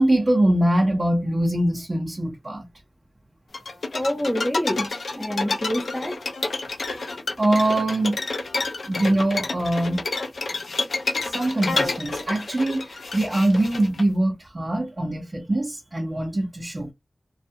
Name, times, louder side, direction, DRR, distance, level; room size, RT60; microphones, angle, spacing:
voice 1, 0.0-2.7 7.4-8.2 8.8-10.0 11.2-16.9, right 1 dB, 35° right, 0.7 m, -23 dB
sound 1, 3.5-14.0, left 3 dB, 80° left, 0.4 m, -29 dB
voice 2, 3.9-6.2, equal, 10° left, 0.4 m, -27 dB
2.3 x 2.2 x 2.7 m
wide cardioid pair, 80°, 0 cm